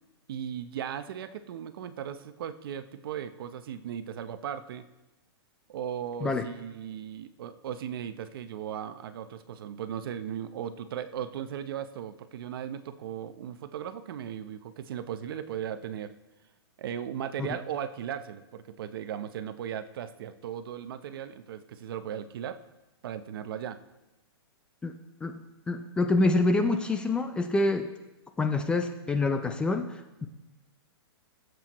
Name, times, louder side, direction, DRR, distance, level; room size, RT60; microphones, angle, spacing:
voice 1, 0.3-4.9 5.7-16.1 16.8-22.6 23.0-23.8, right 9 dB, 60° right, 11 dB, 0.8 m, -37 dB
voice 2, 25.7-27.9 28.4-30.3, left 2 dB, 5° left, 6 dB, 0.4 m, -26 dB
19.5 x 7.8 x 3.0 m, 1.0 s
hypercardioid pair, 155°, 14 cm